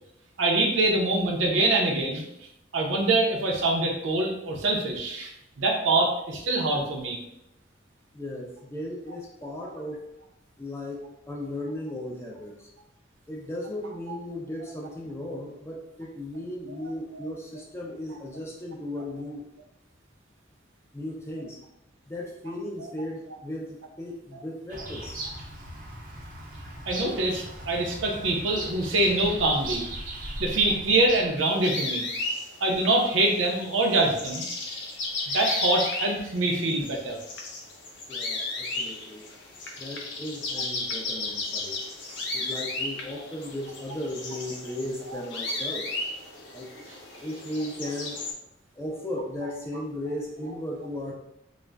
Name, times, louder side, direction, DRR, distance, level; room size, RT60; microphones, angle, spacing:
voice 1, 0.4-2.2 2.7-5.3 5.6-7.2 26.9-29.8 30.4-32.1 32.6-34.4 35.3-37.2, right 2 dB, 85° right, 0 dB, 0.6 m, -24 dB
voice 2, 8.1-10.1 10.6-12.7 13.3-19.5 20.9-21.6 22.1-25.2 38.1-39.2 39.8-41.8 42.3-45.9 46.5-46.8 47.2-48.2 48.7-51.1, left 1 dB, 15° left, -2 dB, 0.4 m, -36 dB
Bird vocalization bird call bird song, 24.7-31.5, right 1 dB, 45° right, 0.5 m, -38 dB
sound 1, 31.4-48.3, left 2 dB, 70° left, 0.5 m, -34 dB
2.4 x 2.0 x 3.2 m, 0.81 s
head